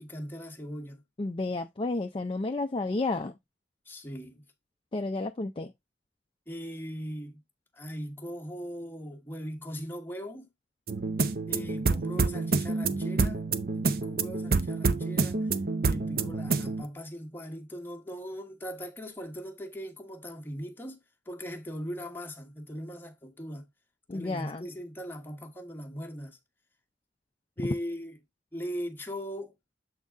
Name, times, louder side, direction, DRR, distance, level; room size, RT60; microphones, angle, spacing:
voice 1, 0.0-1.0 3.8-4.4 6.5-7.4 7.7-10.5 11.5-13.4 13.7-15.6 15.8-21.0 21.3-23.7 24.1-26.4 27.6-28.2 28.5-29.5, equal, 10° left, 1.1 m, -39 dB
voice 2, 1.2-3.3 4.9-5.7 24.1-24.6, left 2 dB, 30° left, 0.4 m, -31 dB
sound 1, 10.9-16.8, right 4 dB, 55° right, 0.6 m, -28 dB
7.4 x 4.0 x 3.5 m
head